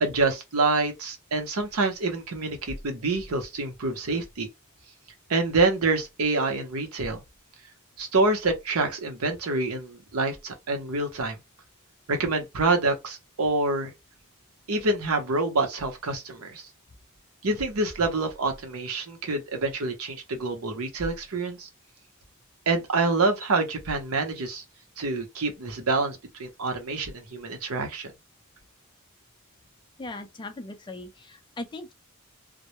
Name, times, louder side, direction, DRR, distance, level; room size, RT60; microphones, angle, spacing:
voice 1, 0.0-4.5 5.3-7.2 8.0-11.4 12.1-13.9 14.7-16.6 17.4-21.7 22.7-24.6 25.0-28.1, right 3 dB, 90° right, 0.8 m, -27 dB
voice 2, 30.0-31.9, left 2 dB, 20° left, 0.4 m, -39 dB
2.2 x 2.1 x 2.9 m
head